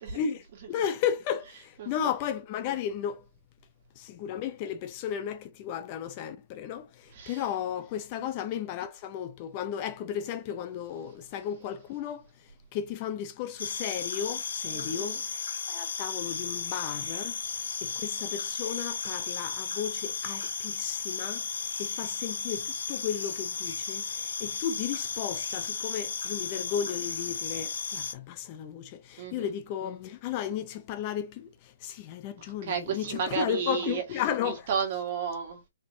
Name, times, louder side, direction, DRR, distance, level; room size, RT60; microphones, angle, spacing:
voice 1, 0.1-3.2 4.0-12.3 12.7-15.2 15.7-17.4 17.8-34.7, left 9 dB, 30° left, 0.5 m, -34 dB
voice 2, 1.8-2.1 7.1-7.4 8.2-8.3 14.7-15.2 29.2-29.5 32.4-34.0 34.4-35.6, right 7 dB, 40° right, 1.8 m, -33 dB
sound 1, 13.6-28.1, left 6 dB, 80° left, 1.0 m, -34 dB
4.3 x 2.9 x 3.1 m
hypercardioid pair, 160°, 0 cm